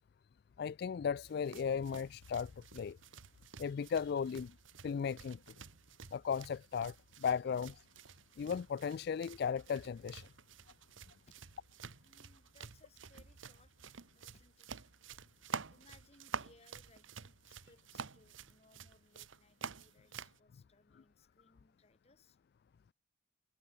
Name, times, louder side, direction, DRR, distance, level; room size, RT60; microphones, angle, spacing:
voice 1, 0.6-3.0 3.6-4.5 4.8-5.4 6.1-6.9 7.2-7.8 8.4-10.3, left 6 dB, 55° left, 0.3 m, -36 dB
sound 1, 1.2-20.4, right 5 dB, 80° right, 1.2 m, -50 dB
voice 2, 12.0-13.7 14.1-14.9 15.7-22.4, left 3 dB, 30° left, 2.0 m, -67 dB
head